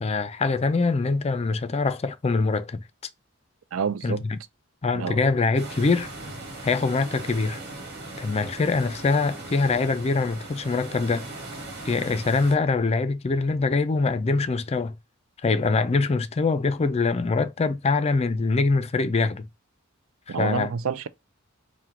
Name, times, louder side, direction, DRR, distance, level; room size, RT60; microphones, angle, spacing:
voice 1, 0.0-2.8 4.0-4.4 4.8-6.1 6.6-7.6 8.2-11.3 11.9-14.9 15.4-19.5 20.3-20.7, left 3 dB, 30° left, 0.4 m, -24 dB
voice 2, 3.7-4.2 4.9-5.2 20.3-21.1, right 6 dB, 70° right, 0.5 m, -28 dB
sound 1, 5.6-12.6, right 2 dB, 50° right, 1.6 m, -39 dB
4.5 x 2.2 x 3.7 m
head